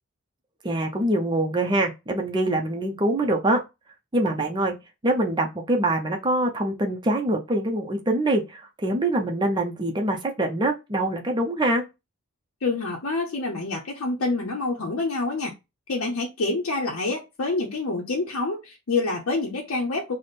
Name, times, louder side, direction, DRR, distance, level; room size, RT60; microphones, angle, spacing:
voice 1, 0.6-3.6 4.1-4.7 5.0-11.8, right 1 dB, 20° right, 0.5 m, -24 dB
voice 2, 12.6-15.5 15.9-20.1, left 3 dB, 80° left, 0.7 m, -27 dB
3.3 x 2.1 x 4.0 m
head